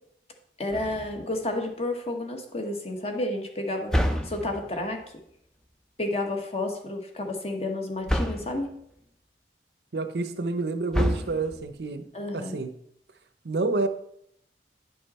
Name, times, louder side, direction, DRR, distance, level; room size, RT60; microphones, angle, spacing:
voice 1, 0.6-3.9 4.2-5.0 6.0-8.7 12.1-12.6, left 2 dB, 35° left, 4 dB, 1.2 m, -31 dB
sound 1, 0.7-1.4 3.9-4.8 8.1-8.7 10.9-11.8, equal, 5° left, 0.5 m, -28 dB
voice 2, 9.9-12.0 12.3-12.7 13.4-13.9, right 3 dB, 65° right, 10 dB, 0.7 m, -28 dB
9.6 x 5.5 x 4.2 m, 0.72 s
head